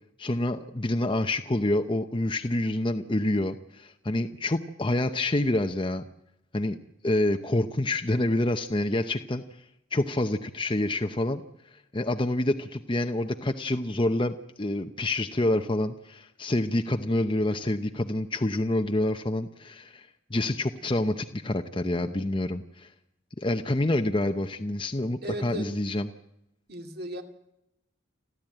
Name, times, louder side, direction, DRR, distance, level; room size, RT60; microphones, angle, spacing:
voice 1, 0.2-6.0 6.5-6.8 7.0-9.4 9.9-11.4 11.9-22.9 23.4-26.1, left 1 dB, 25° left, 6 dB, 0.8 m, -27 dB
voice 2, 25.2-25.7 26.7-27.2, right 1 dB, 50° right, 5 dB, 2.4 m, -35 dB
29.0 x 12.5 x 9.0 m, 0.84 s
head